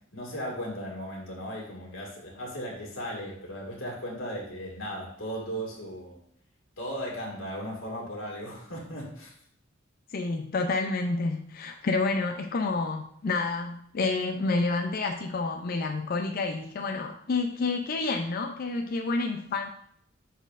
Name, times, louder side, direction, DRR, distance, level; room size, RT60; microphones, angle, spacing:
voice 1, 0.1-6.2 6.8-9.3, equal, 85° left, -3 dB, 1.8 m, -36 dB
voice 2, 10.1-19.7, left 3 dB, 50° left, 5 dB, 0.4 m, -29 dB
10.5 x 4.2 x 2.4 m, 0.65 s
head